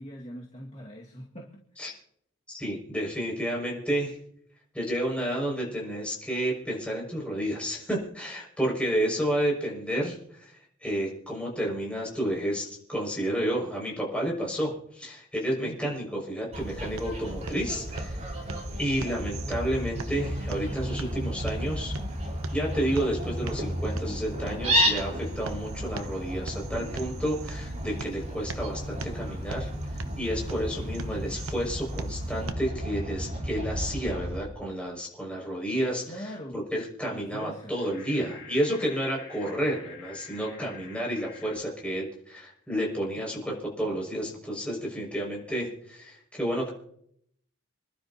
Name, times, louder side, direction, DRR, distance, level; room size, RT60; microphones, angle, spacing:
voice 1, 0.0-1.6 15.6-15.8 36.1-36.6 37.1-37.8, equal, 30° left, -4 dB, 2.2 m, -41 dB
voice 2, 2.5-4.2 4.7-18.3 18.8-21.9 22.5-29.7 30.2-46.7, equal, 5° left, -2 dB, 6.6 m, -31 dB
Fowl, 16.5-34.4, equal, 30° right, 4.8 m, -32 dB
sound 1, 16.5-32.5, right 3 dB, 70° right, 0.9 m, -43 dB
sound 2, 37.6-41.6, left 6 dB, 50° left, 2.5 m, -48 dB
28.5 x 12.0 x 3.0 m, 0.70 s
head